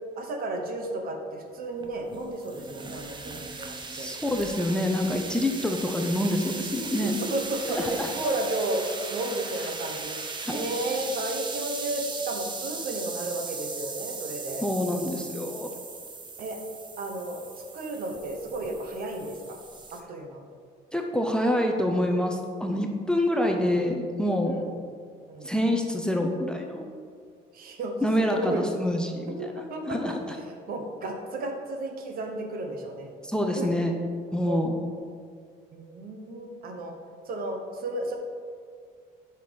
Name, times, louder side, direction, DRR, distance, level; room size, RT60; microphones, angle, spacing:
voice 1, 0.2-4.1 7.0-8.8 9.1-14.7 16.4-16.6 17.0-17.4 17.7-19.6 19.9-20.4 24.5-24.7 25.3-25.5 27.5-27.9 28.3-28.7 29.4-30.2 30.7-33.1 33.6-33.7 34.4-34.7 35.7-36.9 37.2-38.2, right 2 dB, 60° right, 3 dB, 1.1 m, -33 dB
sound 1, 1.8-20.0, right 4 dB, 25° right, 0.8 m, -38 dB
voice 2, 3.9-7.2 7.7-8.1 10.5-10.7 14.6-15.7 20.9-24.6 25.4-26.8 28.0-29.5 29.9-30.4 33.2-33.9 34.3-34.7, left 1 dB, 5° left, 3 dB, 0.6 m, -26 dB
5.7 x 5.6 x 5.1 m, 2.1 s
cardioid pair, 110°, 17 cm